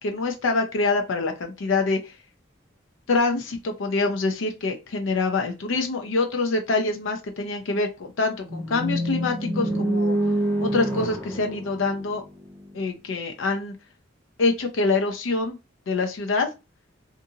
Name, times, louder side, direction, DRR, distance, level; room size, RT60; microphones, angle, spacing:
voice 1, 0.0-2.2 3.1-10.2 10.6-12.2 12.7-13.7 14.4-15.6 15.9-16.5, left 3 dB, 70° left, 4 dB, 0.5 m, -25 dB
sound 1, 8.4-12.5, right 1 dB, 10° left, 0.7 m, -27 dB
2.6 x 2.6 x 2.7 m, 0.27 s
head